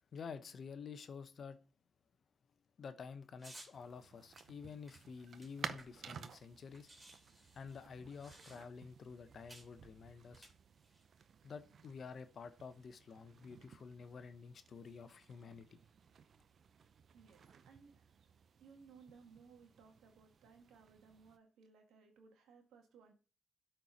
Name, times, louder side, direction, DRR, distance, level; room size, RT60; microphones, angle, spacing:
voice 1, 0.1-1.6 2.8-6.9 7.3-10.5 11.4-15.8, left 5 dB, 55° left, 0.9 m, -50 dB
sound 1, 3.4-3.7 4.3-6.2 6.4-6.5 6.7-8.9 9.5-9.7 10.3-11.0, right 1 dB, 30° right, 3.3 m, -58 dB
sound 2, 3.7-21.4, right 6 dB, 60° right, 0.7 m, -55 dB
voice 2, 17.1-18.3 18.6-23.1, right 5 dB, 75° right, 1.8 m, -62 dB
12.0 x 4.6 x 4.0 m
hypercardioid pair, 45°, 0 cm